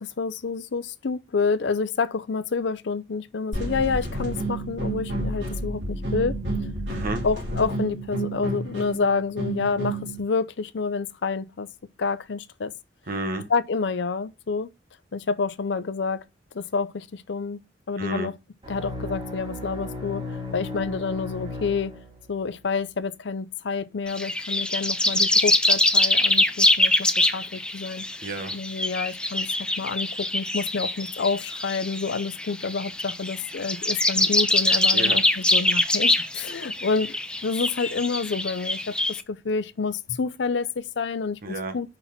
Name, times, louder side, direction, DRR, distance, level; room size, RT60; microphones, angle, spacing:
voice 1, 0.0-6.4 7.2-11.7 12.0-12.7 13.5-14.7 15.1-16.2 16.5-17.6 17.9-18.3 18.7-21.9 22.3-28.0 28.5-37.2 37.4-38.9 39.3-41.4 41.7-42.0, left 4 dB, 70° left, 0.5 m, -28 dB
sound 1, 3.5-10.2, right 2 dB, 75° right, 3.0 m, -30 dB
voice 2, 6.9-7.2 13.1-13.5 18.0-18.3 28.2-28.6 34.9-35.2 41.4-41.8, right 2 dB, 55° right, 1.1 m, -31 dB
sound 2, 18.6-22.5, left 2 dB, 30° right, 2.3 m, -35 dB
sound 3, 24.1-39.2, left 2 dB, 5° left, 0.5 m, -24 dB
5.4 x 4.1 x 5.8 m
head